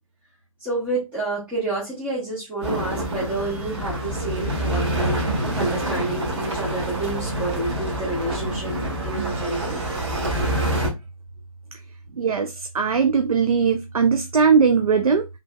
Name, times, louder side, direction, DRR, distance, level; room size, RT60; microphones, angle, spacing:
voice 1, 0.6-4.9 5.4-8.8 9.0-10.1, right 2 dB, 5° right, 0.9 m, -29 dB
sound 1, 2.6-10.9, right 1 dB, 50° right, 1.6 m, -26 dB
voice 2, 12.1-15.3, right 5 dB, 75° right, 0.5 m, -20 dB
3.5 x 3.4 x 2.2 m
figure-of-eight pair, 140°, 18 cm